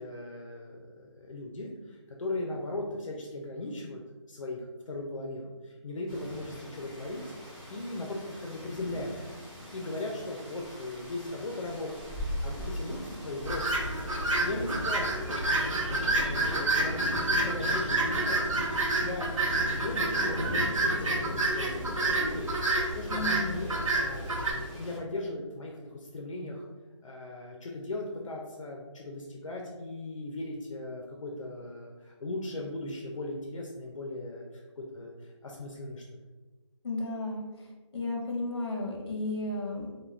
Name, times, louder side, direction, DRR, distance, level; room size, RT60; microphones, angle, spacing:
voice 1, 0.0-4.0 4.3-7.2 7.7-9.1 9.7-12.1 12.4-13.7 14.4-18.4 19.0-19.3 19.8-22.5 22.9-26.6 27.0-36.0, left 2 dB, 80° left, -1 dB, 0.5 m, -38 dB
sound 1, 6.1-25.0, left 1 dB, 10° right, 0.3 m, -40 dB
sound 2, 13.4-24.5, right 2 dB, 80° right, 0.7 m, -29 dB
voice 2, 23.1-23.6 36.8-39.9, left 2 dB, 55° left, -1 dB, 0.8 m, -34 dB
2.3 x 2.2 x 3.1 m, 1.2 s
figure-of-eight pair, 165°, 16 cm